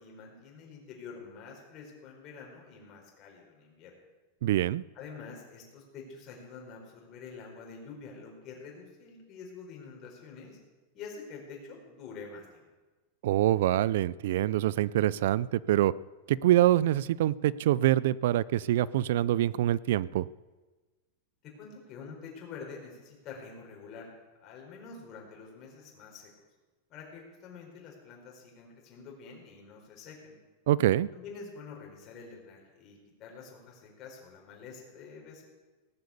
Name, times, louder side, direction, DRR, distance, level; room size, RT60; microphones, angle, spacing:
voice 1, 0.0-3.9 4.9-10.6 10.9-12.6 21.4-26.3 26.9-30.4 31.1-35.4, left 5 dB, 35° left, -1 dB, 4.5 m, -47 dB
voice 2, 4.4-4.8 13.2-15.9 16.3-20.3 30.7-31.1, right 13 dB, 70° right, 21 dB, 0.4 m, -25 dB
17.5 x 7.9 x 8.4 m, 1.2 s
supercardioid pair, 155°, 0 cm